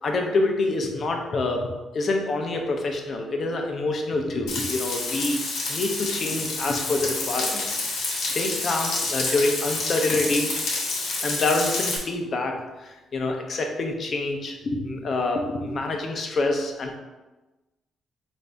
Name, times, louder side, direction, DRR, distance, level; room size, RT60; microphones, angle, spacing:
voice 1, 0.0-1.7 1.9-5.4 5.7-7.7 8.2-10.5 11.2-17.0, left 2 dB, 50° left, 3 dB, 0.6 m, -26 dB
Frying (food), 4.5-12.0, left 3 dB, 80° left, 1.0 m, -28 dB
4.0 x 2.6 x 3.4 m, 1.1 s
cardioid pair, 90°, 0 cm